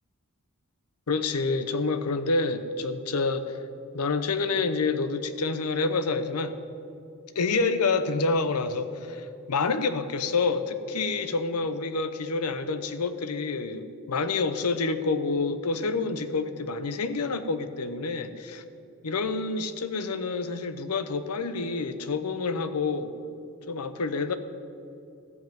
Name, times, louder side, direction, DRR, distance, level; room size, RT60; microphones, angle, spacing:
voice 1, 1.1-3.6 3.9-6.6 7.3-18.6 19.0-23.1 23.7-24.4, left 4 dB, 85° left, 11 dB, 0.7 m, -28 dB
13.5 x 5.5 x 9.1 m, 2.6 s
head